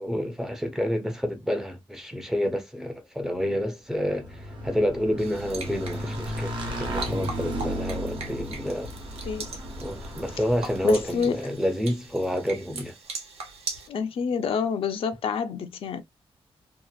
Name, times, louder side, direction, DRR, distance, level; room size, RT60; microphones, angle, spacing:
voice 1, 0.0-8.9 9.8-13.0, equal, 5° right, 0.5 m, -29 dB
Motorcycle / Engine, 4.0-11.3, equal, 50° right, 0.9 m, -34 dB
sound 1, 5.2-13.9, right 4 dB, 80° right, 1.0 m, -40 dB
voice 2, 10.8-11.4 13.9-16.0, left 6 dB, 65° left, 0.5 m, -27 dB
2.8 x 2.4 x 2.3 m
wide cardioid pair, 145°, 10 cm